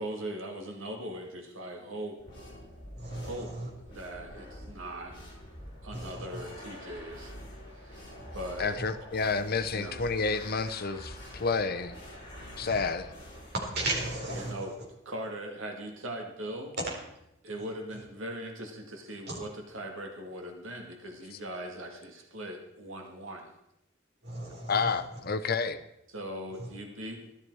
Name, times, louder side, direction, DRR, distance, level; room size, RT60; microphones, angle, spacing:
voice 1, 0.0-2.2 3.1-3.6 3.9-5.1 5.8-8.1 8.3-8.8 9.7-10.0 14.3-14.7 15.1-16.8 17.4-23.5 26.1-27.3, right 1 dB, 75° right, 2.1 m, -40 dB
sound 1, 2.2-14.5, equal, 25° left, 6.9 m, -46 dB
voice 2, 3.0-3.7 5.9-6.4 8.2-8.3 8.8-8.9 12.6-12.8 13.7-14.7 16.8-17.0 17.9-18.0 19.3-19.4 24.2-25.2 26.6-26.7, right 2 dB, 55° right, 4.2 m, -36 dB
voice 3, 8.6-12.0 12.6-13.1 24.7-25.8, left 4 dB, 50° left, 0.8 m, -30 dB
14.0 x 12.5 x 4.7 m
head